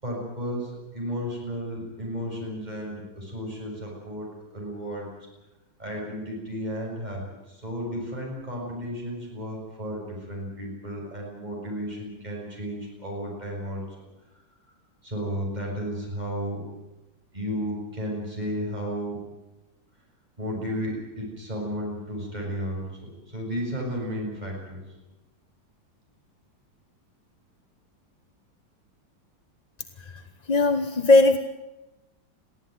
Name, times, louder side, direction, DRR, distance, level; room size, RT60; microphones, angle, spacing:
voice 1, 0.0-5.1 5.8-13.8 15.0-16.6 17.3-19.2 20.4-24.9, equal, 20° right, -2 dB, 7.1 m, -33 dB
voice 2, 30.5-31.4, left 2 dB, 30° left, 8 dB, 0.8 m, -18 dB
23.0 x 16.0 x 9.4 m, 1.0 s
omnidirectional pair, 2.0 m